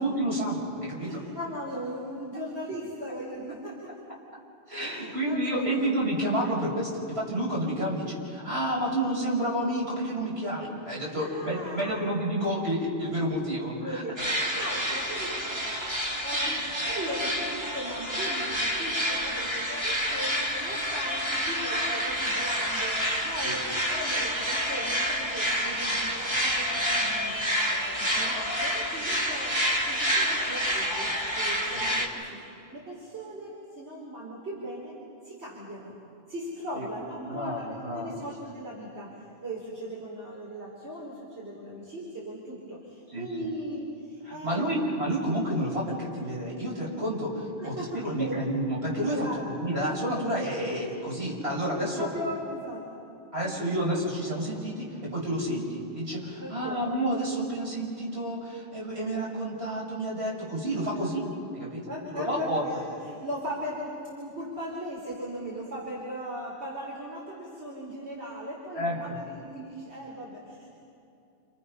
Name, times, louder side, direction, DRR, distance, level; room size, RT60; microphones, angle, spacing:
voice 1, 0.0-1.2 4.7-14.1 16.3-16.5 23.4-23.6 31.7-31.9 36.7-36.8 37.3-38.2 43.1-43.5 44.2-52.1 53.3-62.6 68.7-69.2, right 1 dB, 70° right, -4 dB, 6.6 m, -30 dB
voice 2, 1.0-3.9 4.8-5.9 11.2-12.1 13.3-13.4 13.8-14.1 14.4-15.5 15.8-23.0 23.2-23.6 23.9-32.4 32.7-35.0 35.2-36.0 36.3-37.6 37.9-39.1 39.4-44.7 47.6-48.4 49.1-49.5 51.8-53.0 53.4-53.5 56.4-56.8 61.0-61.1 61.9-70.7, equal, 90° right, -5 dB, 4.2 m, -38 dB
sound 1, 14.2-32.1, equal, 25° right, 2.6 m, -28 dB
29.5 x 28.5 x 5.6 m, 2.6 s
omnidirectional pair, 1.1 m